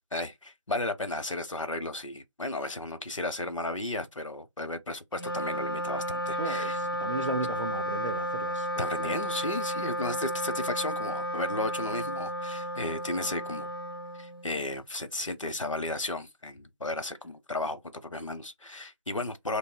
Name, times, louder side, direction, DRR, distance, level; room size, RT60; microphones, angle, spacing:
voice 1, 0.1-6.8 8.8-13.7 14.2-19.6, left 2 dB, 75° left, 0.7 m, -34 dB
Wind instrument woodwind instrument, 5.1-14.7, equal, 45° left, 0.4 m, -33 dB
voice 2, 6.4-9.2, right 3 dB, 75° right, 0.5 m, -36 dB
2.8 x 2.0 x 2.4 m
figure-of-eight pair, 170°, 16 cm